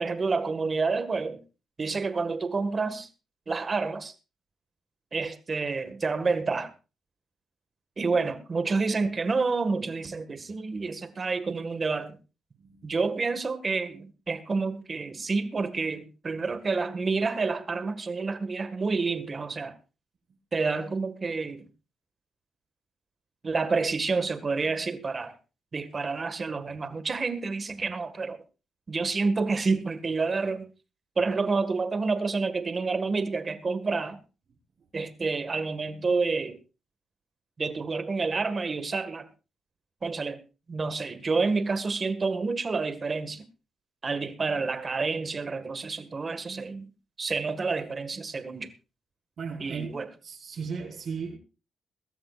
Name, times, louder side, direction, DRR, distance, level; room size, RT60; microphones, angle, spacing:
voice 1, 0.0-1.4 1.8-3.1 3.5-4.1 5.1-6.7 8.0-12.2 12.8-19.8 20.5-21.6 23.4-25.4 25.7-28.4 28.9-30.7 31.2-34.2 34.9-36.6 37.6-39.3 40.0-40.4 40.7-43.4 44.0-46.9 47.2-48.7 49.6-50.1, right 4 dB, 35° right, 1.8 m, -29 dB
voice 2, 12.6-12.9 49.4-49.9 50.2-51.4, right 5 dB, 55° right, 4.7 m, -36 dB
22.0 x 13.0 x 2.5 m
cardioid pair, 115°, 0 cm